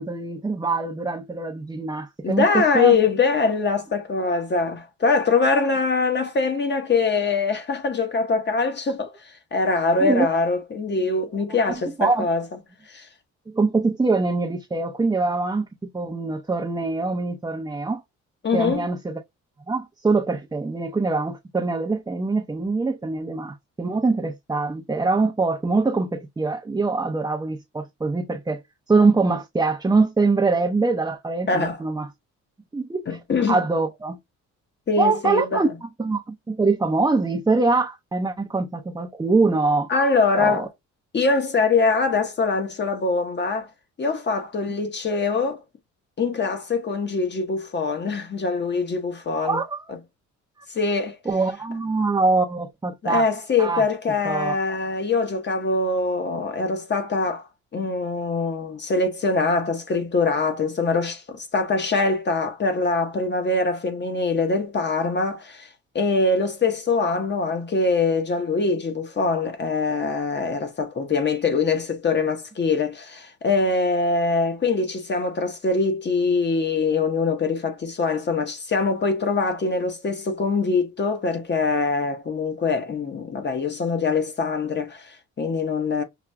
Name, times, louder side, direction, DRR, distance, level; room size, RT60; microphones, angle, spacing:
voice 1, 0.0-3.0 10.0-10.3 11.6-12.3 13.5-18.0 18.5-19.2 19.7-28.6 28.9-32.1 32.7-33.2 33.5-34.2 35.0-39.9 40.4-40.7 49.4-49.8 51.3-53.2 53.6-53.8 54.2-54.5, right 3 dB, 15° right, 0.5 m, -23 dB
voice 2, 2.2-12.4 12.9-13.1 18.4-18.9 31.5-31.8 33.1-33.6 34.9-35.6 39.9-40.7 41.1-43.7 44.0-45.6 46.2-49.6 50.7-51.2 53.0-57.5 57.7-65.7 65.9-86.0, left 4 dB, 35° left, 1.0 m, -23 dB
5.9 x 2.4 x 2.2 m
cardioid pair, 90°, 30 cm